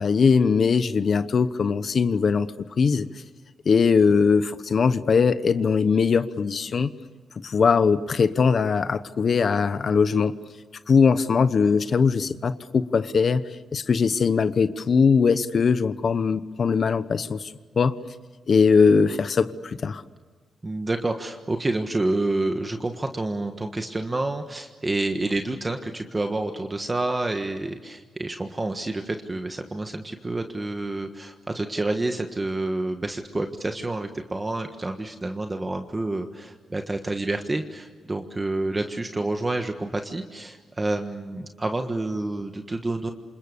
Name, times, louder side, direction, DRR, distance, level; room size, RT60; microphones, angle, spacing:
voice 1, 0.0-2.5 2.8-3.1 3.6-6.9 7.4-10.3 10.9-13.4 13.7-17.5 17.8-18.0 18.5-20.0, left 5 dB, 45° left, 1.0 m, -21 dB
voice 2, 20.6-43.1, right 2 dB, 20° right, 1.5 m, -28 dB
28.0 x 27.5 x 6.8 m
cardioid pair, 120°, 0 cm